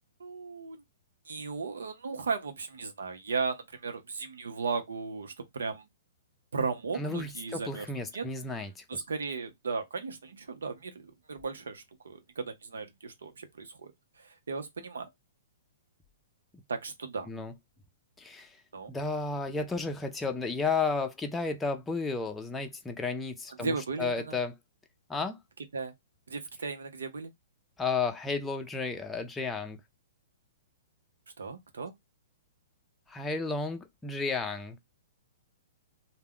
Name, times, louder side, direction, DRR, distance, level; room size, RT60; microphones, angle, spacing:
voice 1, 0.2-0.8 1.3-5.9 6.5-8.3 8.9-13.9 14.2-15.1 16.7-17.3 18.7-18.9 23.6-24.4 25.7-25.9 26.3-27.3 31.4-31.9, right 4 dB, 85° right, 0.7 m, -36 dB
voice 2, 7.0-9.0 17.3-17.5 18.2-18.6 18.9-24.5 25.1-25.4 27.8-29.8 33.1-34.8, left 4 dB, 10° left, 0.5 m, -33 dB
2.2 x 2.1 x 3.6 m
hypercardioid pair, 135°, 0 cm